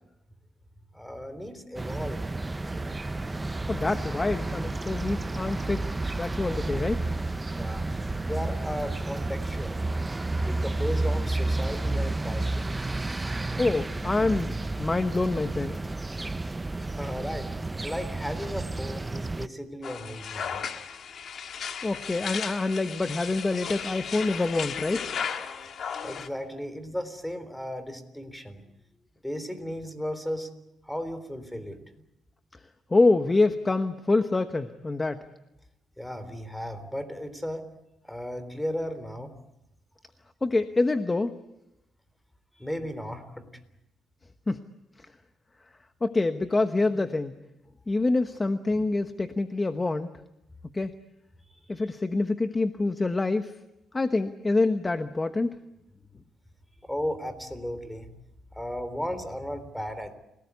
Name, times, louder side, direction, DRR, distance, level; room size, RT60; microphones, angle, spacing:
voice 1, 0.9-2.2 2.6-3.0 7.5-7.9 8.2-9.8 10.4-12.8 17.0-20.6 26.0-28.6 29.2-30.5 30.8-31.8 36.0-37.7 38.1-39.3 42.5-43.5 51.5-51.8 56.8-58.1 58.5-60.2, equal, 5° left, 12 dB, 3.6 m, -35 dB
sound 1, 1.8-19.5, right 2 dB, 20° right, 0.8 m, -31 dB
voice 2, 3.7-7.0 13.6-15.8 21.8-25.1 32.9-35.2 40.4-41.3 44.5-44.6 46.0-47.4 47.9-50.1 50.7-50.9 51.7-53.5 53.9-55.5, left 3 dB, 20° left, 9 dB, 1.1 m, -26 dB
sound 2, 19.8-26.3, left 7 dB, 60° left, 2.0 m, -35 dB
29.0 x 18.5 x 8.3 m, 0.89 s
cardioid pair, 90°, 0 cm